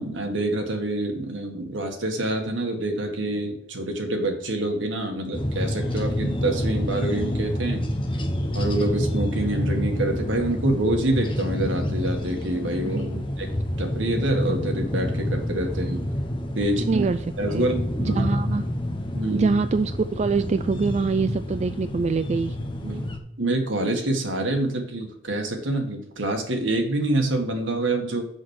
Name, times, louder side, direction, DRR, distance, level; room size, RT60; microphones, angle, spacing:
voice 1, 0.0-7.8 8.5-13.1 13.4-13.5 13.8-16.1 16.5-17.1 17.4-18.3 19.1-19.5 22.8-28.2, right 1 dB, 80° right, 3 dB, 1.8 m, -26 dB
sound 1, 5.3-23.2, left 1 dB, 25° left, 1.0 m, -28 dB
voice 2, 12.8-13.3 16.8-17.2 17.5-17.7 18.0-18.6 19.3-22.6, right 4 dB, 35° right, 11 dB, 0.3 m, -25 dB
6.3 x 5.9 x 6.5 m, 0.74 s
head